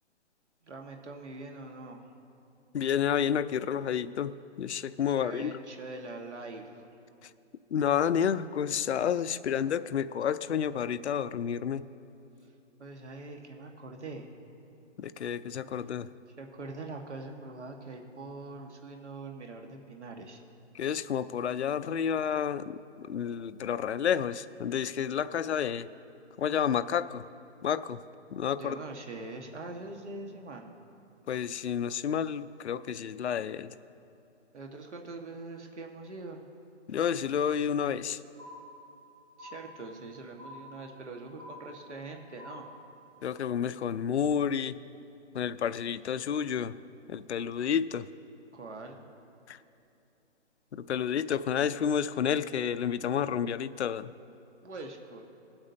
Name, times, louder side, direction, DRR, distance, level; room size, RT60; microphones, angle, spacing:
voice 1, 0.6-2.1 5.1-6.8 12.4-12.5 12.8-14.3 16.4-20.4 28.6-30.7 34.5-36.4 39.4-42.7 48.5-49.0 54.6-55.2, right 3 dB, 70° right, 2 dB, 1.6 m, -43 dB
voice 2, 2.7-5.5 7.2-7.3 7.7-11.8 15.0-16.1 20.7-25.9 26.4-27.2 27.6-28.0 28.3-28.7 31.3-33.7 36.9-38.2 43.2-44.8 45.3-46.8 47.1-48.1 49.5-49.6 50.7-54.1, left 8 dB, 65° left, 13 dB, 0.5 m, -30 dB
sound 1, 38.4-39.1 39.4-40.1 40.4-41.1 41.4-42.1 42.4-43.1, left 1 dB, 90° right, 2.7 m, -48 dB
21.0 x 8.7 x 2.7 m, 2.7 s
hypercardioid pair, 175°, 36 cm